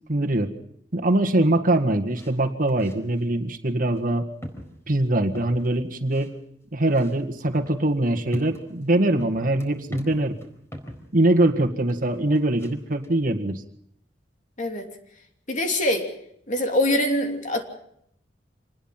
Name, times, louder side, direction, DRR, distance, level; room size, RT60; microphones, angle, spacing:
voice 1, 0.1-0.5 0.9-4.3 4.9-6.3 6.7-10.4 11.1-13.6, right 1 dB, 50° right, 5 dB, 1.8 m, -22 dB
sound 1, 2.2-2.3 2.7-3.2 3.9-4.1 4.4-5.8 6.1-6.3 6.9-11.1 11.9-12.7 13.0-13.1, equal, 15° left, 4.3 m, -39 dB
voice 2, 14.6-14.9 15.5-16.1 16.5-17.6, left 1 dB, 45° left, 4 dB, 3.0 m, -23 dB
26.0 x 20.0 x 5.8 m, 0.71 s
head